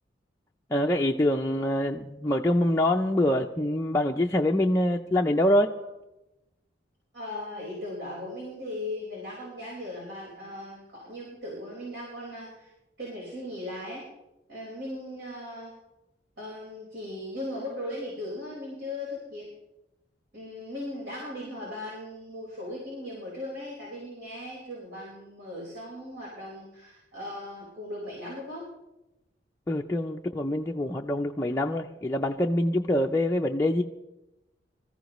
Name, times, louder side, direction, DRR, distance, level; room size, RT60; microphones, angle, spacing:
voice 1, 0.7-5.7 29.7-33.8, left 1 dB, 15° left, 0 dB, 0.5 m, -25 dB
voice 2, 7.1-12.7 13.0-14.1 14.5-15.7 16.4-19.5 20.3-28.7, left 1 dB, 80° right, -5 dB, 4.6 m, -38 dB
25.0 x 14.5 x 3.0 m, 0.95 s
head